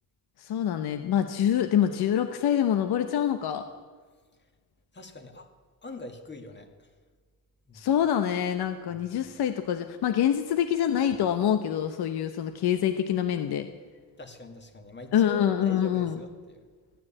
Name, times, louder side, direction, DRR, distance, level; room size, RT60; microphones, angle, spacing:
voice 1, 0.4-3.7 7.7-13.7 15.1-16.3, left 9 dB, 80° left, 7 dB, 1.0 m, -26 dB
voice 2, 4.9-5.5 5.8-6.9 7.7-7.9 14.2-16.6, left 1 dB, 30° left, 4 dB, 1.9 m, -43 dB
14.5 x 9.4 x 8.7 m, 1.5 s
cardioid pair, 100°, 38 cm